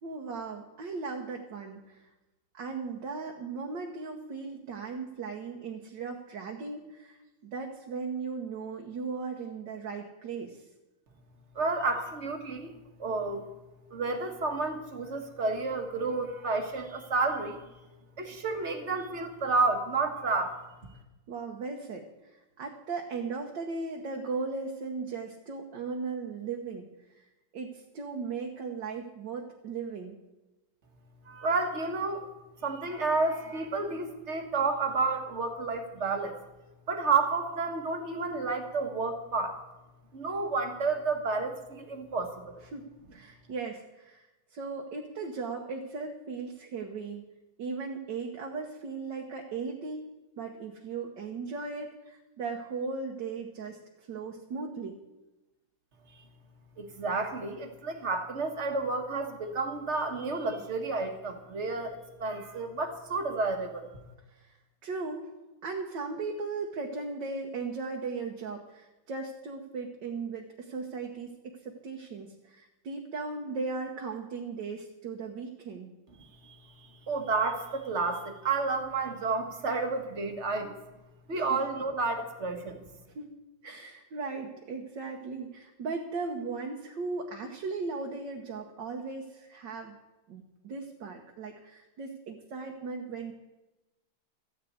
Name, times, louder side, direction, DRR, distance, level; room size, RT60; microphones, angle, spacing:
voice 1, 0.0-2.1 2.5-10.6 21.3-26.9 27.1-27.2 27.5-30.2 42.6-44.3 44.5-47.3 47.6-50.0 50.4-55.0 64.3-64.6 64.8-65.3 65.6-71.3 71.6-75.9 81.4-81.5 83.1-83.3 83.6-89.9 90.3-93.3, right 4 dB, 60° right, 1 dB, 1.7 m, -37 dB
voice 2, 11.5-12.7 13.0-13.4 13.9-17.6 18.2-20.6 31.3-32.2 32.6-36.3 36.9-39.6 40.1-42.5 56.8-64.0 76.2-76.6 77.1-80.7 81.3-82.8, right 3 dB, 35° right, 6 dB, 1.5 m, -30 dB
14.0 x 6.9 x 9.3 m, 1.1 s
omnidirectional pair, 2.3 m